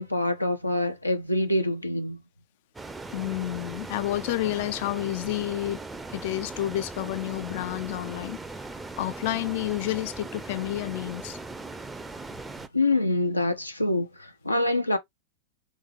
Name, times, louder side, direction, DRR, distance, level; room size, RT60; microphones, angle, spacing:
voice 1, 0.0-2.2 12.7-15.0, left 2 dB, 85° left, 0.7 m, -25 dB
sound 1, 2.7-12.7, right 3 dB, 10° right, 0.5 m, -39 dB
voice 2, 3.1-5.8 6.1-8.4 8.7-11.4, left 15 dB, 50° left, 0.4 m, -30 dB
3.5 x 3.1 x 3.3 m
figure-of-eight pair, 90°, 0 cm